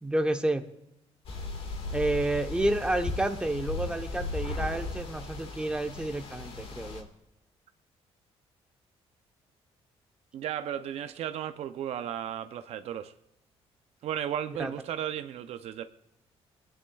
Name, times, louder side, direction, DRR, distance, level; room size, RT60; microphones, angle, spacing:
voice 1, 0.0-0.7 1.9-7.1 14.6-14.7, right 1 dB, 10° right, 0.9 m, -30 dB
sound 1, 1.3-7.0, left 3 dB, 60° left, 1.7 m, -36 dB
voice 2, 10.3-13.1 14.0-15.8, right 10 dB, 70° right, 0.6 m, -34 dB
29.0 x 10.0 x 2.3 m
cardioid pair, 95°, 11 cm